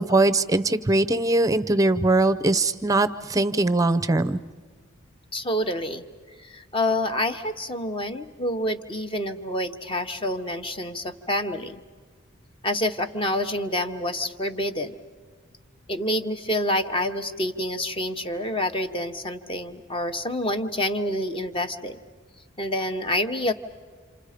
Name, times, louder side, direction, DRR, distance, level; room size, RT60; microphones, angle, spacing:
voice 1, 0.0-4.4, right 2 dB, 15° right, 14 dB, 0.6 m, -21 dB
voice 2, 5.3-6.0 6.4-11.8 12.6-14.9 15.9-22.0 22.6-23.5, left 1 dB, 25° left, 8 dB, 1.0 m, -27 dB
28.0 x 28.0 x 5.0 m, 1.5 s
head